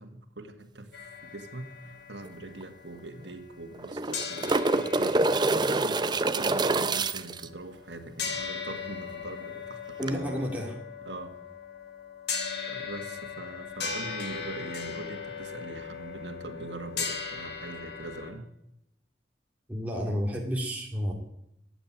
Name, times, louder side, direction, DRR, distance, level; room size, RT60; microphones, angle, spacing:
voice 1, 0.0-10.5 11.0-11.4 12.7-18.5, right 2 dB, 90° right, 5 dB, 1.8 m, -42 dB
sound 1, 0.9-3.8 4.1-18.3, left 6 dB, 70° left, 3.2 m, -39 dB
sound 2, 2.3-2.4 2.6-2.7 3.7-7.5 10.0-10.1, right 2 dB, 25° right, 0.6 m, -26 dB
voice 2, 10.0-10.7 19.7-21.1, equal, 10° right, -2 dB, 2.4 m, -31 dB
14.5 x 9.1 x 8.9 m, 0.79 s
head